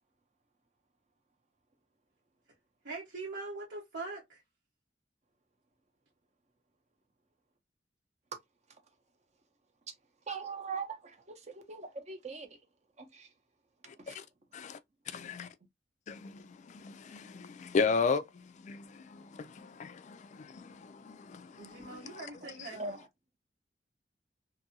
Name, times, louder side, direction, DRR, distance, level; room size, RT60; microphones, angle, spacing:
voice 1, 2.8-4.4 21.6-22.8, right 3 dB, 70° right, 1.0 m, -42 dB
voice 2, 10.3-11.0 11.7-12.5 13.1-13.3 14.1-14.2 22.8-23.0, right 4 dB, 40° right, 0.7 m, -39 dB
voice 3, 13.9-14.2 14.5-14.8 15.1-15.5 16.1-22.3 22.6-22.7, left 5 dB, 40° left, 0.3 m, -36 dB
2.6 x 2.6 x 2.7 m
head